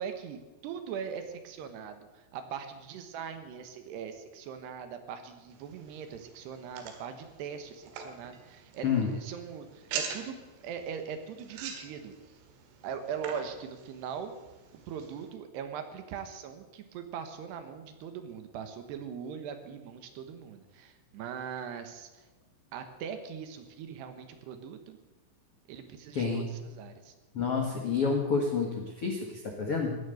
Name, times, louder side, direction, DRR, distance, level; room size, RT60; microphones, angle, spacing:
voice 1, 0.0-10.4 10.6-12.4 12.8-14.3 14.9-22.3 22.7-25.0 25.7-27.1, right 7 dB, 70° right, 8 dB, 3.0 m, -41 dB
sound 1, 5.5-15.3, right 6 dB, 85° right, 4.4 m, -44 dB
voice 2, 26.1-26.5 27.3-30.0, left 5 dB, 85° left, 1 dB, 1.2 m, -29 dB
16.0 x 10.5 x 7.9 m, 1.2 s
omnidirectional pair, 5.7 m